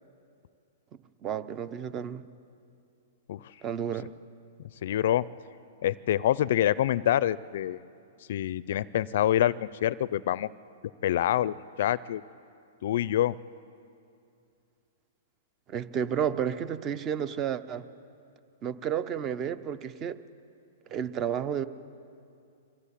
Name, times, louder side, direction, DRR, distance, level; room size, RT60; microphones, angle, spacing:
voice 1, 1.2-2.2 3.6-4.1 15.7-17.9 18.6-20.2 20.9-21.6, right 8 dB, 25° right, 15 dB, 0.8 m, -31 dB
voice 2, 4.8-5.3 5.8-7.8 8.3-10.5 11.0-12.2 12.8-13.4, left 12 dB, 60° left, 20 dB, 0.4 m, -26 dB
23.0 x 15.0 x 8.4 m, 2.5 s
hypercardioid pair, 145°, 0 cm